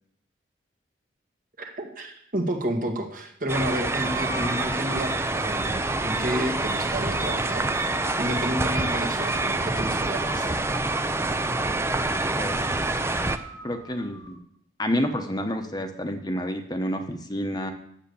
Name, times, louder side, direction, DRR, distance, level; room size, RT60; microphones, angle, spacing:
voice 1, 1.6-7.7 8.2-10.6, right 1 dB, 50° right, 2 dB, 1.7 m, -31 dB
sound 1, 3.5-13.4, right 2 dB, 15° right, 0.5 m, -26 dB
sound 2, 4.0-6.0 11.6-14.4, right 2 dB, 80° right, 2.2 m, -41 dB
voice 2, 13.6-14.4 14.8-17.7, equal, 20° left, 5 dB, 1.0 m, -29 dB
10.0 x 8.0 x 7.0 m, 0.72 s
head